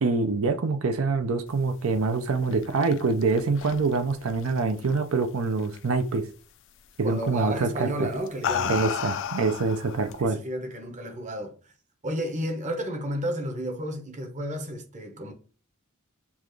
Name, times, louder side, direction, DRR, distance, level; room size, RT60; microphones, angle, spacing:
voice 1, 0.0-6.3 7.0-8.1 8.7-10.4, right 4 dB, 65° right, 0.5 m, -25 dB
sound 1, 2.3-5.2 5.6-6.0 7.2-7.5 8.1-10.2, left 8 dB, 60° left, 0.4 m, -33 dB
voice 2, 7.0-8.8 10.2-11.7 12.0-15.3, equal, 35° right, 1.0 m, -32 dB
7.1 x 2.4 x 3.1 m
head